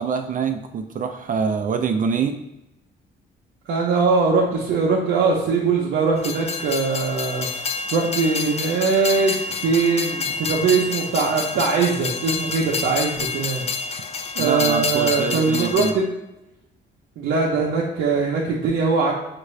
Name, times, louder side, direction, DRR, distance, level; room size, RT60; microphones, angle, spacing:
voice 1, 0.0-2.4 14.4-15.9, right 6 dB, 45° right, 6 dB, 0.4 m, -25 dB
voice 2, 3.7-13.6 14.4-16.1 17.2-19.1, right 4 dB, 80° right, -3 dB, 0.7 m, -21 dB
Train, 6.2-15.9, left 4 dB, 35° left, 0.4 m, -28 dB
5.7 x 2.5 x 3.1 m, 0.93 s
cardioid pair, 90°, 20 cm